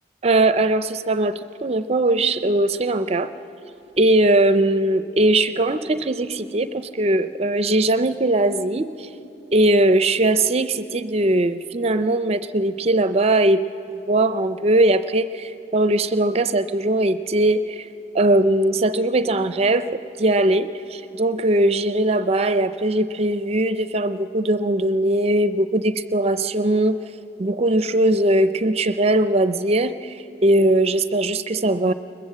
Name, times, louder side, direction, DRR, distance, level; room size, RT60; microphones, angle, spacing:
voice 1, 0.2-1.3 1.6-3.3 4.0-9.1 9.5-13.6 14.1-17.9 18.1-27.0 27.4-31.9, right 1 dB, 35° right, 12 dB, 0.5 m, -20 dB
21.5 x 21.0 x 7.6 m, 2.8 s
head